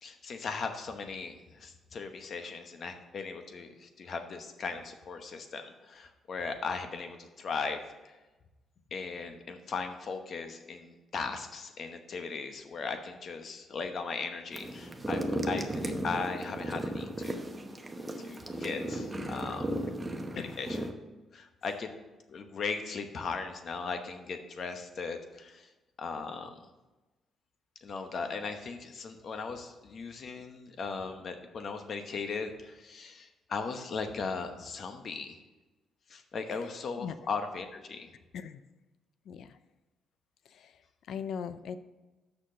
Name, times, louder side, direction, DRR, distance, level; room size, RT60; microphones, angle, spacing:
voice 1, 0.0-8.2 8.9-17.4 18.2-19.7 20.3-20.8 21.3-21.9 22.3-25.7 26.0-26.6 27.8-35.4 36.1-38.1, left 4 dB, 55° left, 7 dB, 1.0 m, -38 dB
sound 1, 14.5-20.9, right 1 dB, 15° right, 0.9 m, -35 dB
voice 2, 39.3-39.6 40.5-40.8 41.1-41.8, left 7 dB, 70° left, 13 dB, 0.5 m, -39 dB
6.4 x 6.0 x 6.6 m, 1.1 s
cardioid pair, 90°, 0 cm